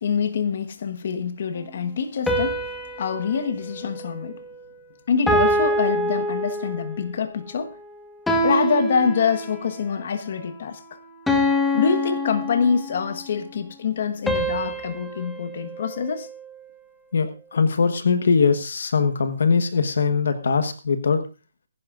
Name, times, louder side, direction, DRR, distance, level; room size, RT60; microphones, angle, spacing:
voice 1, 0.0-2.6 3.0-4.4 5.1-7.7 8.4-10.8 11.7-16.3 17.5-17.6, left 6 dB, 50° left, 1.4 m, -25 dB
sound 1, 2.3-4.8 5.3-7.0 8.3-9.8 11.3-13.1 14.3-16.6, equal, 5° left, 1.3 m, -26 dB
voice 2, 17.1-21.2, left 5 dB, 70° left, 1.3 m, -21 dB
21.0 x 11.0 x 2.5 m
hypercardioid pair, 160°, 0 cm